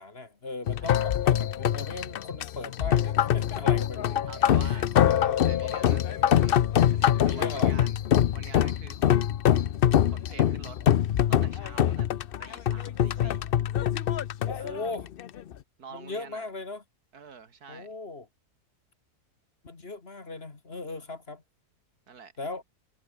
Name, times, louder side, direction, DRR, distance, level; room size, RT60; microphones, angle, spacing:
voice 1, 0.0-5.5 7.3-7.8 10.8-10.9 14.5-15.1 15.9-16.8 17.7-18.3 19.6-21.4 22.4-22.6, left 3 dB, 40° left, 2.3 m, -38 dB
sound 1, 0.7-15.5, left 10 dB, 80° left, 0.5 m, -24 dB
voice 2, 0.8-1.1 4.3-4.9 5.2-6.6 6.9-8.0 8.3-9.3 10.1-10.8 11.3-12.1 12.4-13.5 14.6-14.9 15.8-16.5 17.1-18.0 22.1-22.3, right 6 dB, 70° right, 2.3 m, -47 dB
omnidirectional pair, 1.7 m